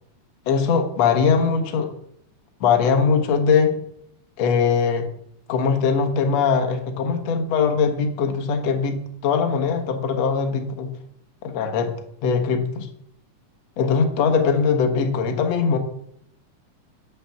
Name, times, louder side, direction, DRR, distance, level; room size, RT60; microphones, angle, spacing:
voice 1, 0.5-1.9 2.6-3.7 4.4-5.1 5.5-10.9 11.4-11.9 12.2-12.9 13.8-15.8, left 5 dB, 65° left, 5 dB, 2.3 m, -21 dB
9.7 x 5.7 x 7.2 m, 0.71 s
omnidirectional pair, 3.4 m